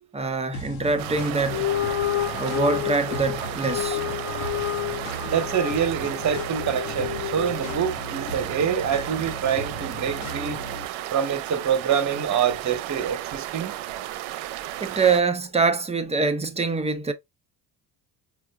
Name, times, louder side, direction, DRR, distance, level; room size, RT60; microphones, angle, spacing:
voice 1, 0.1-1.7 2.4-4.0 14.8-17.1, right 4 dB, 15° right, 0.6 m, -24 dB
sound 1, 0.5-10.8, equal, 90° left, 1.0 m, -37 dB
sound 2, 1.0-15.2, right 14 dB, 75° right, 0.6 m, -34 dB
sound 3, 1.5-8.0, left 12 dB, 35° left, 0.8 m, -30 dB
voice 2, 5.2-10.6 11.1-13.7, right 8 dB, 35° right, 0.9 m, -26 dB
4.7 x 2.3 x 2.2 m
supercardioid pair, 75°, 48 cm